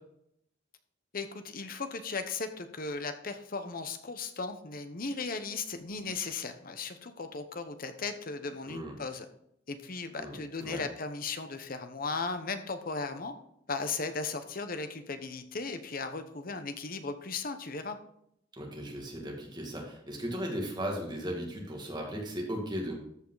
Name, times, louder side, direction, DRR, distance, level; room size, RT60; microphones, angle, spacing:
voice 1, 1.1-9.3 9.7-13.3 13.7-18.0, left 4 dB, 50° left, 8 dB, 0.9 m, -36 dB
voice 2, 18.6-22.9, equal, 25° right, -1 dB, 2.4 m, -36 dB
13.5 x 5.6 x 4.0 m, 0.73 s
head